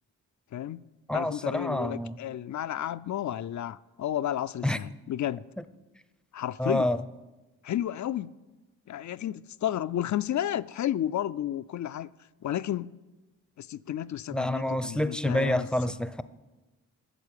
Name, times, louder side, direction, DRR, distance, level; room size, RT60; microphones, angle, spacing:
voice 1, 0.5-0.8 1.1-5.4 6.3-6.9 7.6-8.3 8.9-12.1 12.4-12.9 13.6-15.7, left 11 dB, 55° left, 0.4 m, -32 dB
voice 2, 1.1-2.2 4.6-4.8 6.6-7.0 14.3-16.2, left 1 dB, ahead, 0.6 m, -28 dB
9.0 x 6.7 x 8.3 m
supercardioid pair, 45°, 36 cm